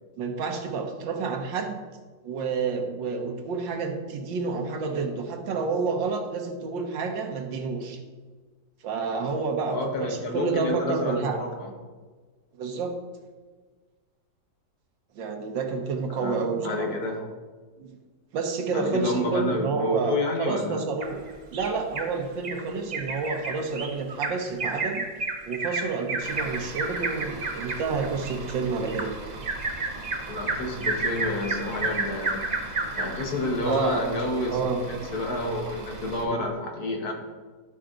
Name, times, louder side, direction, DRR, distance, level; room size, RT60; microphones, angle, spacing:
voice 1, 0.2-1.7 2.2-8.0 8.8-11.4 12.5-12.9 15.1-16.9 17.8-17.9 18.3-21.2 21.5-25.0 25.4-29.1 33.6-34.0 34.5-34.8 36.3-36.4, right 4 dB, 80° right, 4 dB, 1.7 m, -29 dB
voice 2, 9.7-11.7 16.1-17.3 18.7-20.9 22.8-23.0 30.3-32.5 32.9-37.1, left 1 dB, 60° left, 2 dB, 1.6 m, -29 dB
Bird vocalization bird call bird song, 21.0-22.1 22.4-22.6 22.9-33.3 33.7-33.8 34.2-34.3, right 3 dB, 50° right, 0.5 m, -31 dB
Bus / Idling, 26.2-36.2, right 3 dB, 30° right, 1.0 m, -41 dB
12.5 x 4.6 x 3.8 m, 1.4 s
omnidirectional pair, 2.0 m